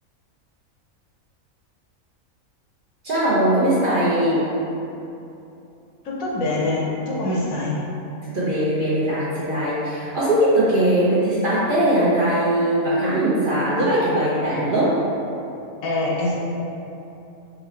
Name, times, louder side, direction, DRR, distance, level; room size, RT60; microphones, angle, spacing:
voice 1, 3.0-4.5 8.2-14.9, right 1 dB, 50° right, -9 dB, 0.7 m, -20 dB
voice 2, 6.0-7.8 15.8-16.3, left 2 dB, 85° left, -4 dB, 1.1 m, -24 dB
3.7 x 2.6 x 3.1 m, 2.8 s
omnidirectional pair, 1.4 m